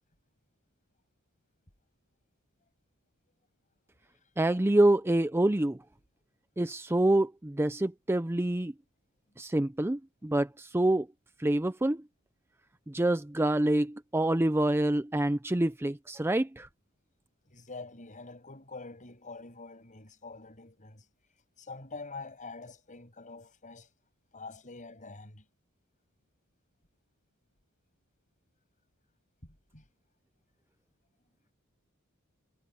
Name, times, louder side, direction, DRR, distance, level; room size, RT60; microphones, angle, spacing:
voice 1, 4.4-5.8 6.6-8.7 9.4-11.1 11.4-12.0 12.9-16.7, right 1 dB, 10° right, 0.5 m, -26 dB
voice 2, 17.5-21.0 21.6-23.9 24.3-25.4 29.4-29.8, left 3 dB, 35° left, 7.5 m, -46 dB
head